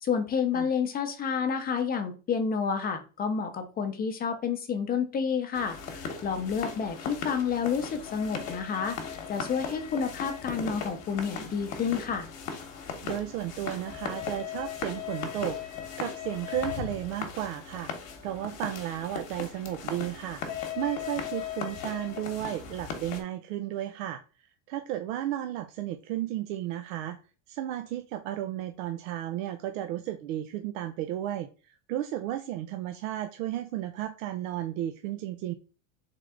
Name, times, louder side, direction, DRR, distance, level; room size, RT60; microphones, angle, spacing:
voice 1, 0.0-9.0 9.3-12.3, left 6 dB, 25° left, 8 dB, 0.6 m, -29 dB
sound 1, 5.5-23.2, left 7 dB, 40° left, 1.1 m, -38 dB
voice 2, 13.0-27.2 27.5-35.5, right 12 dB, 75° right, 8 dB, 0.6 m, -34 dB
3.7 x 3.2 x 3.6 m, 0.35 s
supercardioid pair, 140°, 40 cm